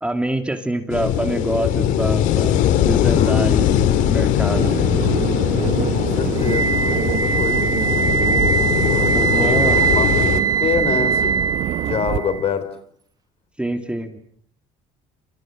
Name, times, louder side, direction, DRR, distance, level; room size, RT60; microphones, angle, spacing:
voice 1, 0.0-4.8 9.1-9.8 13.6-14.2, right 1 dB, 10° right, 7 dB, 2.7 m, -25 dB
sound 1, 0.9-10.4, left 10 dB, 75° left, 2.1 m, -20 dB
voice 2, 3.1-3.4 5.9-7.7 8.9-10.1 10.6-11.5 11.8-12.7, left 6 dB, 50° left, 12 dB, 3.9 m, -26 dB
sound 2, 4.5-12.2, right 12 dB, 65° right, 1.2 m, -26 dB
Wind instrument woodwind instrument, 6.4-12.4, right 5 dB, 30° right, 1.8 m, -21 dB
28.0 x 27.5 x 6.5 m, 0.63 s
supercardioid pair, 100°, 13 cm